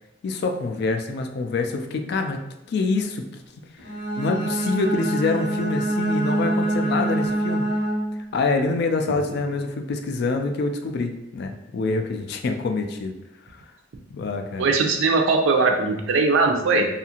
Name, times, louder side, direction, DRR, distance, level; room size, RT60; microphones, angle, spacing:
voice 1, 0.2-3.2 4.2-7.7 8.3-13.1 14.1-14.7, left 3 dB, 55° left, 5 dB, 0.3 m, -26 dB
Bowed string instrument, 3.8-8.3, right 1 dB, 60° right, 0.9 m, -25 dB
voice 2, 14.6-16.9, right 3 dB, 85° right, 4 dB, 0.4 m, -20 dB
2.7 x 2.4 x 2.8 m, 0.88 s
head